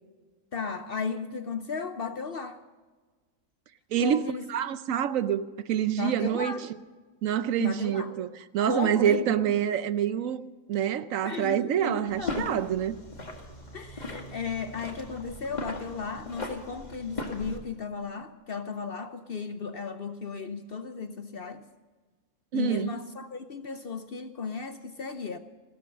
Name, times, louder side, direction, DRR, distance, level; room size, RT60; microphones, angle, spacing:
voice 1, 0.5-2.6 4.0-4.4 6.0-6.7 7.6-8.1 8.7-9.3 11.2-12.5 13.7-21.6 22.5-25.4, left 5 dB, 55° left, 0.7 m, -35 dB
voice 2, 3.9-6.8 7.2-10.4 10.7-13.0 22.5-22.9, right 9 dB, 70° right, 1.0 m, -27 dB
sound 1, 12.1-17.6, left 2 dB, 30° left, 2.0 m, -39 dB
15.5 x 13.0 x 6.5 m
omnidirectional pair, 1.5 m